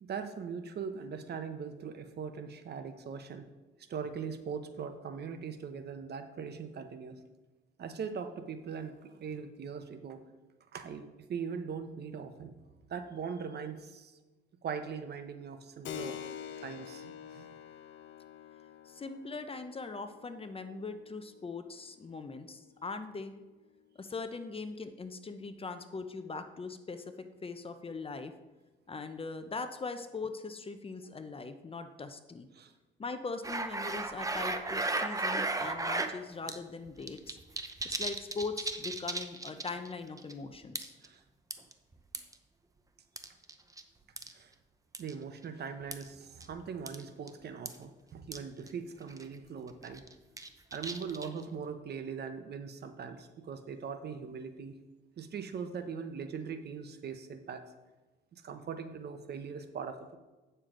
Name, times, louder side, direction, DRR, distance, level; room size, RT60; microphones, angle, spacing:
voice 1, 0.0-3.5 3.9-7.2 7.8-10.2 10.7-12.6 12.9-14.1 14.6-16.2 16.6-17.5 32.5-32.7 41.0-41.2 44.3-44.5 45.0-50.1 50.7-54.8 55.2-57.7 58.3-60.2, right 6 dB, 55° right, 8 dB, 0.9 m, -41 dB
Keyboard (musical), 15.8-24.1, left 9 dB, 65° left, 0.6 m, -48 dB
voice 2, 18.9-23.3 24.0-27.0 27.4-28.3 28.9-32.5 33.0-37.4 37.8-40.9, left 4 dB, 30° left, 9 dB, 0.7 m, -41 dB
sound 1, 33.4-36.1 36.5-36.6 36.9-39.9 40.2-40.3 40.8-41.1 41.5-42.3 43.2-43.8 44.2-44.3 44.9-45.1 45.9-46.1 46.4-46.5 46.9-47.0 47.3-47.4 47.7-47.8 48.3-48.4 48.7-48.8 49.1-49.4 49.8-51.4, right 2 dB, 15° right, 0.7 m, -35 dB
9.2 x 6.7 x 3.8 m, 1.2 s
cardioid pair, 90°, 20 cm